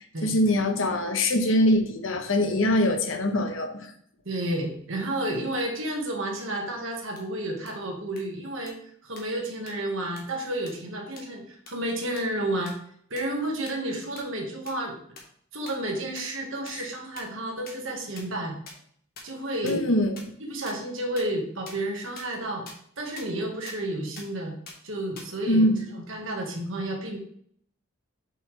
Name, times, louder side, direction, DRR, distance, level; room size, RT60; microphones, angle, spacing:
voice 1, 0.2-3.9 19.6-20.1 25.5-25.8, left 1 dB, 65° left, 5 dB, 1.0 m, -23 dB
voice 2, 4.2-8.8 9.0-12.8 13.1-15.0 15.5-18.5 19.2-19.8 20.4-22.7 23.0-24.5 24.8-25.6 25.9-27.2, right 1 dB, 65° right, 1 dB, 1.7 m, -31 dB
sound 1, 7.2-7.3 7.7-7.8 8.2-8.3 8.7-8.8 9.2-9.3 9.7-9.8 10.2-10.3 10.7-10.8 11.2-11.3 11.7-11.8 12.2-12.3 12.7-12.8 13.2-13.3 13.7-13.8 14.2-14.3 14.7-14.8 15.2-15.3 15.7-15.8 16.2-16.3 16.7-16.8 17.2-17.3 17.7-17.8 18.1-18.2 18.7-18.8 19.2-19.3 19.7-19.8 20.2-20.3 20.7-20.8 21.2-21.3 21.7-21.8 22.2-22.3 22.7-22.8 23.2-23.3 23.7-23.8 24.2-24.3 24.7-24.8 25.2-25.3, left 4 dB, 45° left, 1.6 m, -42 dB
7.2 x 5.6 x 3.4 m, 0.63 s
head